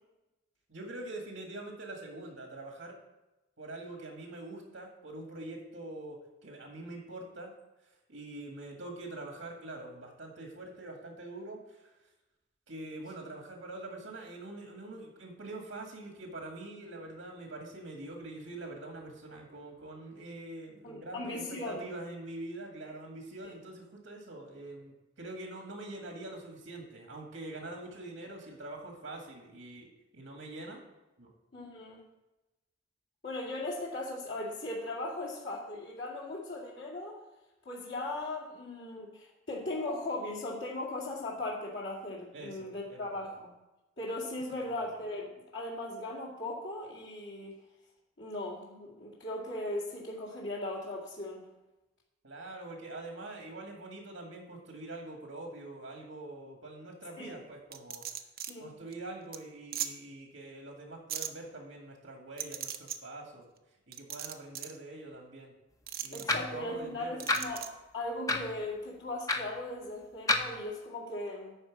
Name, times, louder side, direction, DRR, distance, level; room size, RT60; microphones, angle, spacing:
voice 1, 0.7-2.9 3.6-7.5 8.1-11.9 12.7-29.9 30.1-30.8 31.2-31.3 42.3-43.3 52.2-58.0 58.6-63.5 63.9-65.5 66.0-67.3, right 2 dB, 85° right, 1 dB, 2.0 m, -44 dB
voice 2, 20.8-21.9 31.5-32.0 33.2-37.2 37.7-43.5 44.0-47.6 48.2-51.4 57.2-57.3 58.5-58.7 66.1-67.7 67.9-71.5, left 2 dB, 60° left, -5 dB, 2.0 m, -38 dB
sound 1, 57.7-58.5 58.9-59.0 59.3-59.4 59.7-59.9 61.1-61.3 62.4-63.0 63.9-64.8 65.9-66.2 67.2-67.7, right 10 dB, 50° right, 0.7 m, -37 dB
sound 2, 66.3-66.5 67.3-67.4 68.3-68.5 69.3-69.4 70.3-70.5, left 2 dB, 20° left, 0.7 m, -28 dB
11.0 x 4.4 x 7.4 m, 1.0 s
head